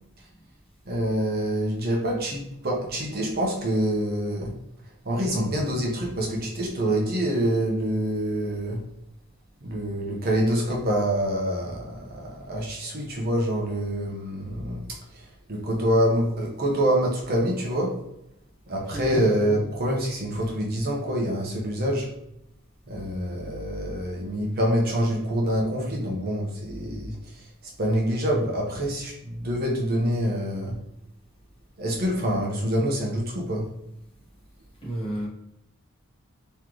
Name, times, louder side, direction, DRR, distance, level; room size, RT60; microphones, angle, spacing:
voice 1, 0.9-4.5 5.0-8.8 9.6-14.8 15.1-18.0 18.7-22.1 22.9-27.5 27.8-30.8 31.8-33.7, equal, 45° right, -1 dB, 0.9 m, -26 dB
voice 2, 18.9-19.2 34.8-35.3, right 1 dB, 25° left, -4 dB, 1.2 m, -31 dB
3.8 x 3.2 x 3.1 m, 0.82 s
head